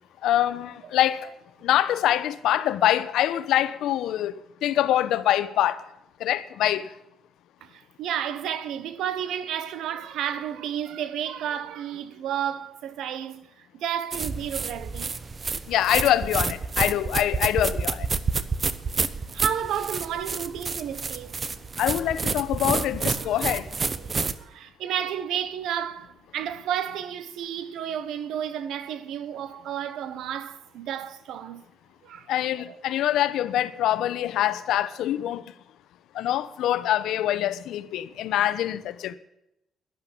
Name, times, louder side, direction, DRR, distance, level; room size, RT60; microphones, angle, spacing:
voice 1, 0.2-1.3 1.6-4.3 4.6-5.8 6.2-6.9 15.7-18.1 21.8-23.7 32.3-35.5 36.1-39.1, left 12 dB, 85° left, 0.9 m, -24 dB
voice 2, 7.6-15.1 19.3-21.4 23.2-23.6 24.0-31.6 32.0-32.3 32.6-32.9, right 9 dB, 80° right, 1.1 m, -32 dB
sound 1, 14.1-24.4, right 4 dB, 35° right, 1.0 m, -29 dB
12.0 x 11.0 x 7.0 m
cardioid pair, 90°, 0 cm